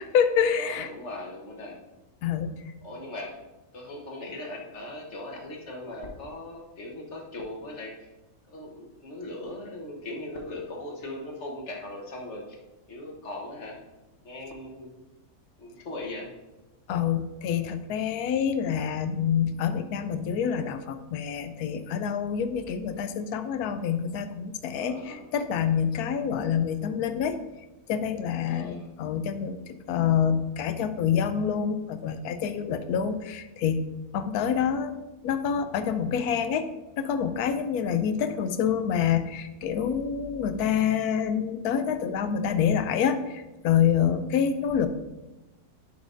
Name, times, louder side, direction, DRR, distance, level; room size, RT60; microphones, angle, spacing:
voice 1, 0.0-0.9 2.2-2.6 16.9-27.4 27.9-29.6 29.9-33.8 34.1-36.7 37.0-44.9, left 8 dB, 85° left, 10 dB, 1.1 m, -27 dB
voice 2, 0.6-1.8 2.8-3.3 3.7-7.9 8.5-12.6 12.9-13.8 14.2-14.9 15.6-16.3 24.7-25.3 28.5-28.9, left 1 dB, 50° left, 0 dB, 1.3 m, -39 dB
10.5 x 5.7 x 2.5 m, 1.0 s
omnidirectional pair, 1.6 m